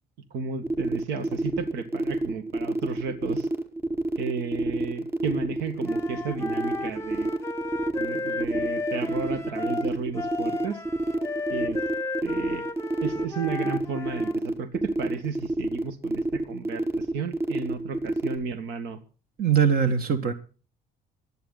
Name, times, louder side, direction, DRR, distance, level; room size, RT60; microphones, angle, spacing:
voice 1, 0.3-3.5 4.2-7.3 8.0-10.8 11.5-11.8 12.2-12.6 13.0-19.0, right 5 dB, 85° right, 2.0 m, -33 dB
sound 1, 0.6-18.4, right 1 dB, 15° right, 4.6 m, -28 dB
Wind instrument woodwind instrument, 5.8-14.4, left 3 dB, 15° left, 0.8 m, -34 dB
voice 2, 19.4-20.3, right 7 dB, 60° right, 2.2 m, -21 dB
24.0 x 9.5 x 4.0 m
cardioid pair, 110°, 17 cm